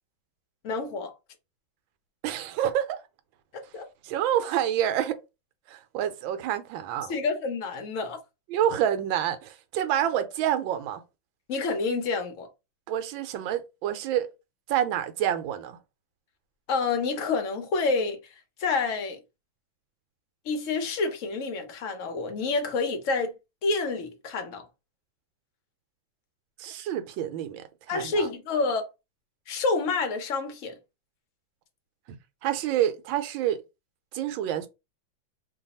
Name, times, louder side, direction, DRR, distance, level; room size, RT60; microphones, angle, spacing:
voice 1, 0.6-1.1 3.5-3.9 7.1-8.2 11.5-12.5 16.7-18.2 18.6-19.2 20.4-23.3 23.6-24.6 27.9-28.9 29.5-30.8, left 4 dB, 60° left, 0.9 m, -28 dB
voice 2, 2.2-3.0 4.0-5.2 5.7-7.1 8.5-11.0 12.9-14.3 14.7-15.8 26.6-28.3 32.1-33.6 34.1-34.7, right 10 dB, 85° right, 1.4 m, -28 dB
3.3 x 2.3 x 4.0 m
omnidirectional pair, 2.1 m